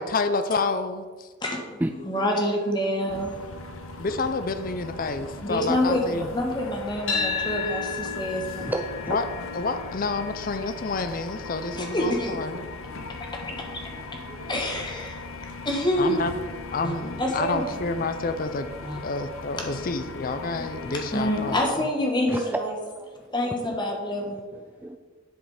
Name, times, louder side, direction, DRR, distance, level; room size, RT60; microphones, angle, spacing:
voice 1, 0.0-1.3 4.0-6.3 9.1-9.2 9.5-12.7 16.0-16.3 16.7-18.7 19.0-21.6, left 3 dB, 45° left, 9 dB, 0.6 m, -29 dB
voice 2, 1.4-3.7 5.4-8.7 11.7-12.4 12.8-16.3 16.8-16.9 17.2-17.6 18.8-19.0 20.5-22.7 23.3-24.4, equal, 20° left, 0 dB, 1.5 m, -28 dB
sound 1, 3.1-21.7, left 3 dB, 90° left, 0.8 m, -39 dB
sound 2, 7.1-15.3, left 5 dB, 70° left, 1.8 m, -35 dB
voice 3, 8.6-9.2 22.3-23.9 24.3-25.0, right 1 dB, 10° right, 5 dB, 0.3 m, -32 dB
11.0 x 5.0 x 5.0 m, 1.4 s
head